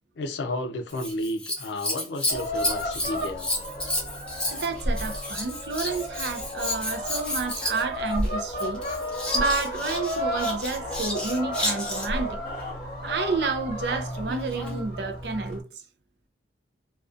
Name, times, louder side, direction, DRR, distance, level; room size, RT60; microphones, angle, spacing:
voice 1, 0.2-3.5, left 1 dB, 75° left, 0.4 m, -32 dB
Scissors, 0.9-12.3 14.2-14.8 15.5-15.6, left 1 dB, 5° left, 0.5 m, -31 dB
sound 1, 2.3-15.6, equal, 50° left, 0.9 m, -33 dB
voice 2, 4.5-8.8 9.3-12.4 13.0-15.6, right 4 dB, 65° right, 0.5 m, -30 dB
2.5 x 2.2 x 2.4 m
head